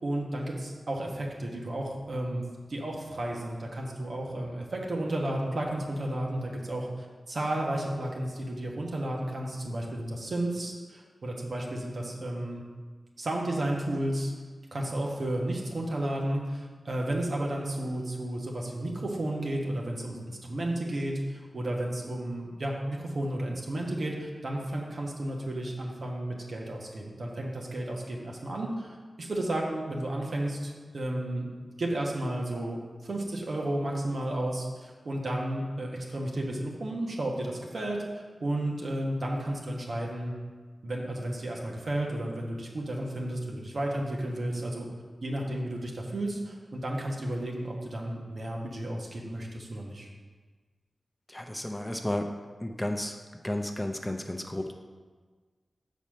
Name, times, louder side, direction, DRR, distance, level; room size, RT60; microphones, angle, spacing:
voice 1, 0.0-2.4 2.7-12.6 13.2-14.3 14.7-31.5 31.8-38.0 38.4-40.3 40.8-44.9 45.2-50.1, right 1 dB, 65° right, -1 dB, 1.3 m, -32 dB
voice 2, 51.3-52.3 52.6-53.2 53.4-54.7, left 1 dB, 15° left, 4 dB, 0.5 m, -32 dB
7.0 x 4.2 x 6.2 m, 1.4 s
wide cardioid pair, 85°, 0 cm